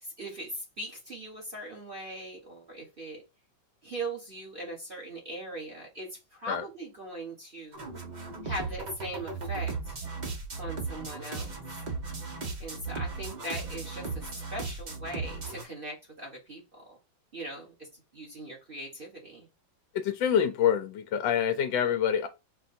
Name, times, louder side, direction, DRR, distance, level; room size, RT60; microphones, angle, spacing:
voice 1, 0.0-3.2 3.8-7.9 8.4-10.0 10.6-11.5 12.6-17.0 17.3-19.5, right 1 dB, 35° right, 1.1 m, -40 dB
sound 1, 7.7-15.6, right 4 dB, 65° right, 0.4 m, -36 dB
voice 2, 19.9-22.3, left 8 dB, 75° left, 1.2 m, -26 dB
4.5 x 2.2 x 4.1 m
omnidirectional pair, 2.2 m